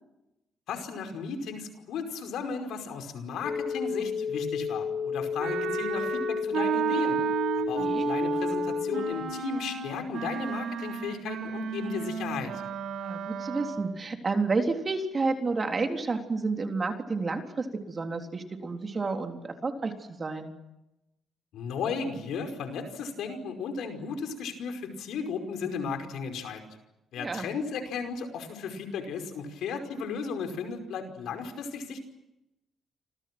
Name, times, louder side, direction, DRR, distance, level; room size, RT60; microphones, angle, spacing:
voice 1, 0.7-7.2 7.5-12.5 21.5-26.6 27.1-32.0, left 5 dB, 80° left, 6 dB, 5.2 m, -35 dB
sound 1, 3.4-9.1, left 6 dB, 55° left, 4.2 m, -31 dB
Wind instrument woodwind instrument, 5.4-14.0, right 8 dB, 75° right, 4.7 m, -32 dB
voice 2, 13.0-20.5 27.2-27.5, right 3 dB, 35° right, 4 dB, 3.7 m, -30 dB
29.5 x 26.0 x 6.2 m, 0.91 s
cardioid pair, 90°, 0 cm